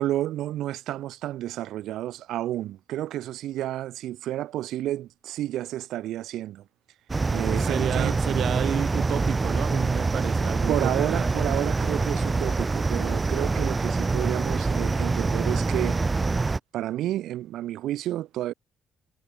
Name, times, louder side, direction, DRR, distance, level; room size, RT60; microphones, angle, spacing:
voice 1, 0.0-6.6 7.3-8.2 10.7-16.0 16.7-18.5, right 13 dB, 75° right, 2.8 m, -30 dB
sound 1, 7.1-16.6, right 3 dB, 15° right, 3.3 m, -25 dB
voice 2, 7.6-11.2, right 10 dB, 50° right, 6.1 m, -31 dB
cardioid pair, 170°, 0 cm